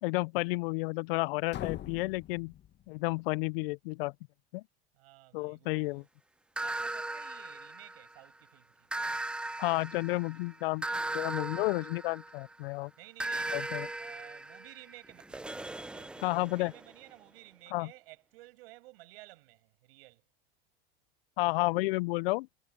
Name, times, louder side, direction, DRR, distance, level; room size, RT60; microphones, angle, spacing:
voice 1, 0.0-2.5 2.9-4.1 4.5-4.6 5.3-6.0 9.6-10.8 11.1-12.9 13.5-13.9 16.2-16.7 17.7-17.9 21.4-22.5, left 23 dB, 70° left, 0.6 m, -31 dB
sound 1, 1.5-3.4, left 11 dB, 35° left, 1.8 m, -43 dB
voice 2, 4.9-6.1 6.6-8.9 13.0-13.6 14.0-20.2, right 20 dB, 70° right, 7.8 m, -54 dB
sound 2, 6.6-8.3 8.9-12.6 13.2-16.9, right 2 dB, 5° right, 0.3 m, -38 dB
hypercardioid pair, 105°, 30 cm